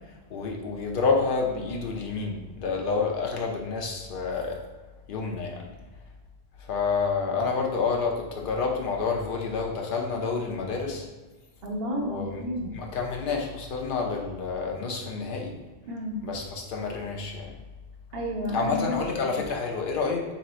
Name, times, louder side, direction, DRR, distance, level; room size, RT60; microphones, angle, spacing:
voice 1, 0.3-4.6 5.1-5.6 6.7-11.0 12.0-12.3 12.7-15.5 16.2-17.5 18.5-20.2, left 4 dB, 55° left, 0 dB, 0.8 m, -28 dB
voice 2, 11.6-12.7 15.9-16.2 18.1-19.4, equal, 65° right, 0 dB, 0.9 m, -31 dB
3.0 x 2.8 x 4.2 m, 1.2 s
omnidirectional pair, 1.1 m